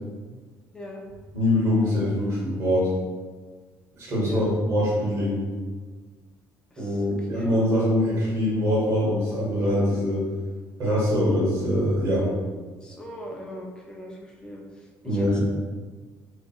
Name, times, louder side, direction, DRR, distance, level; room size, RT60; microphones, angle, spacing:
voice 1, 1.3-2.9 4.0-5.5 6.8-10.2 10.8-12.3 15.0-15.4, left 1 dB, 45° right, -6 dB, 1.1 m, -23 dB
voice 2, 4.2-4.5 6.7-7.5 12.8-15.4, equal, 15° left, -1 dB, 0.4 m, -41 dB
2.7 x 2.3 x 2.3 m, 1.4 s
cardioid pair, 145°, 6 cm